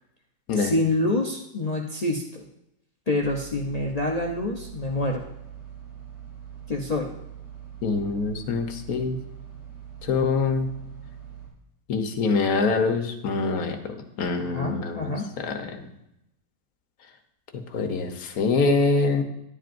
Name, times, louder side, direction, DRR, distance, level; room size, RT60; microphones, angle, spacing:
voice 1, 0.6-2.5 3.1-5.3 6.7-7.1 14.4-15.3, left 2 dB, 75° left, 0 dB, 0.3 m, -27 dB
sound 1, 3.2-11.5, right 9 dB, 65° right, 3.0 m, -43 dB
voice 2, 7.8-9.2 10.0-10.7 11.9-15.9 17.5-19.2, left 4 dB, 60° left, 6 dB, 1.3 m, -25 dB
11.0 x 10.5 x 2.6 m, 0.83 s
omnidirectional pair, 1.9 m